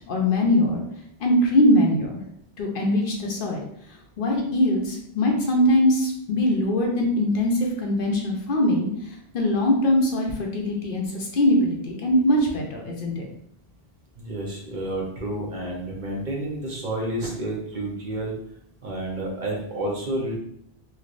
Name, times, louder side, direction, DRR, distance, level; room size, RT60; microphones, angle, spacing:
voice 1, 0.1-0.8 1.2-2.2 2.6-3.6 4.2-13.3, left 1 dB, 60° left, 0 dB, 0.7 m, -22 dB
voice 2, 14.2-18.3 18.8-20.4, right 1 dB, 50° right, -2 dB, 0.9 m, -30 dB
3.2 x 2.9 x 2.4 m, 0.71 s
omnidirectional pair, 1.1 m